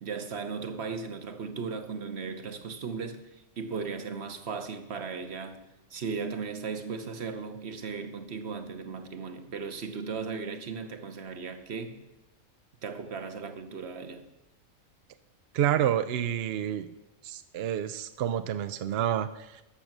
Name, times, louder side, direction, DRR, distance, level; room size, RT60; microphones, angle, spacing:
voice 1, 0.0-5.6 5.9-12.0 12.8-14.2, right 5 dB, 50° right, 1.2 m, -37 dB
voice 2, 15.5-16.9 17.2-19.6, right 10 dB, 70° right, 0.6 m, -29 dB
13.0 x 6.6 x 6.0 m
omnidirectional pair, 1.5 m